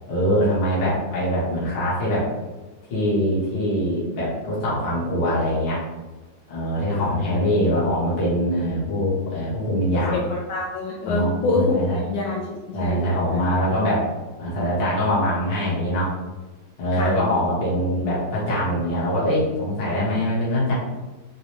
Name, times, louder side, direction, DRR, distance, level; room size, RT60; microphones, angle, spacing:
voice 1, 0.1-2.3 2.9-5.8 6.5-10.2 11.1-12.0 12.7-14.0 14.4-16.2 16.8-20.7, equal, 60° left, -7 dB, 1.9 m, -23 dB
voice 2, 9.9-11.8 12.1-12.4 12.7-13.0 13.3-13.4 16.9-17.1, left 3 dB, 75° left, -2 dB, 1.3 m, -26 dB
4.8 x 2.2 x 3.0 m, 1.2 s
omnidirectional pair, 2.3 m